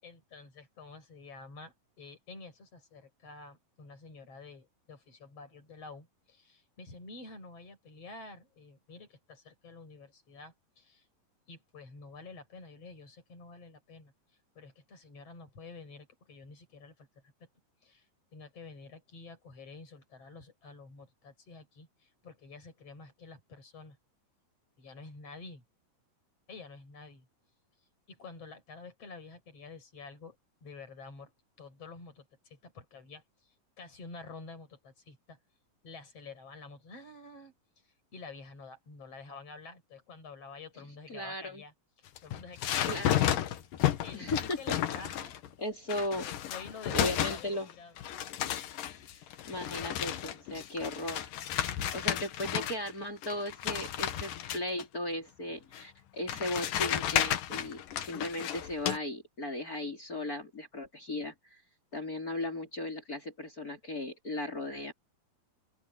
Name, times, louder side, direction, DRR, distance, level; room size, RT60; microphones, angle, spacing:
voice 1, 0.0-11.1 11.5-14.1 14.6-17.1 17.4-17.5 17.8-18.1 18.3-24.0 24.8-25.6 26.5-27.3 28.1-30.4 30.6-31.3 31.6-35.4 35.8-37.5 37.8-43.3 44.0-45.3 46.2-48.0, left 3 dB, 45° left, 7.4 m, -49 dB
voice 2, 41.1-41.6 42.9-43.3 44.1-44.6 45.6-46.3 46.9-47.7 49.4-51.3 51.7-61.6 61.9-64.9, left 1 dB, 25° left, 3.7 m, -37 dB
sound 1, 42.1-45.5 45.9-47.7 48.0-52.9 53.2-54.8 55.7-55.8 56.3-59.0, left 11 dB, 80° left, 3.0 m, -32 dB
open air
omnidirectional pair, 3.8 m